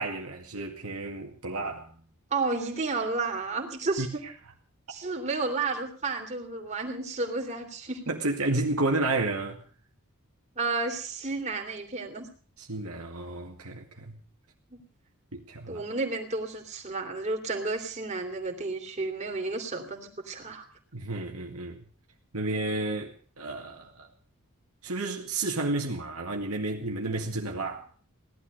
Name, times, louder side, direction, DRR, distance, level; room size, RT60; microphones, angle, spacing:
voice 1, 0.0-1.9 4.0-4.1 8.1-9.6 12.6-14.2 15.3-15.8 20.9-21.9 22.3-24.1 24.8-27.9, right 2 dB, 75° right, 2.1 m, -31 dB
voice 2, 2.3-4.2 4.9-8.0 10.5-12.3 14.7-14.8 15.7-20.7, right 3 dB, 30° right, 3.2 m, -32 dB
18.0 x 12.0 x 6.4 m
head